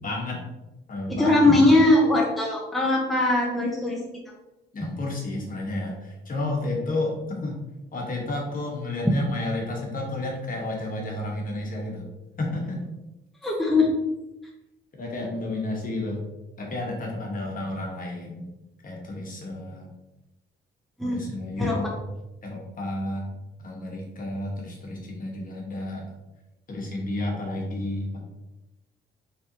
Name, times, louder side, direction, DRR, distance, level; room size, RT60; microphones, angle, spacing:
voice 1, 0.0-0.4 0.9-1.5 4.7-7.6 7.9-12.0 12.4-12.8 13.4-13.5 14.9-16.2 16.6-18.5 18.8-19.9 21.0-21.9 22.4-23.3 23.6-26.1 26.7-28.2, left 2 dB, 45° left, -1 dB, 1.3 m, -31 dB
voice 2, 1.2-4.0 13.4-13.9 21.0-21.8, left 2 dB, ahead, -3 dB, 0.8 m, -20 dB
4.3 x 3.5 x 2.9 m, 0.98 s
cardioid pair, 90°, 20 cm